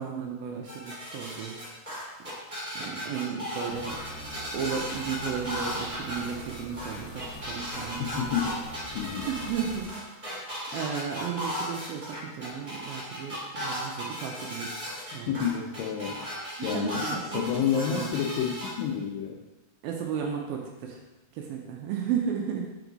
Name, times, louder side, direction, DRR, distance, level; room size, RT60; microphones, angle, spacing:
voice 1, 0.0-1.9 2.8-4.0 4.5-8.3 9.3-10.4 10.7-14.8 15.1-15.5 16.6-18.2 19.8-21.0 21.3-22.7, right 7 dB, 80° right, 1 dB, 2.3 m, -34 dB
sound 1, 0.6-18.7, equal, 20° right, 1.0 m, -36 dB
sound 2, 3.7-9.9, equal, 55° left, 1.1 m, -43 dB
voice 2, 8.0-8.6 9.0-9.3 15.3-19.4, left 8 dB, 85° left, -1 dB, 2.0 m, -30 dB
6.9 x 4.7 x 3.9 m, 1.0 s
omnidirectional pair, 4.7 m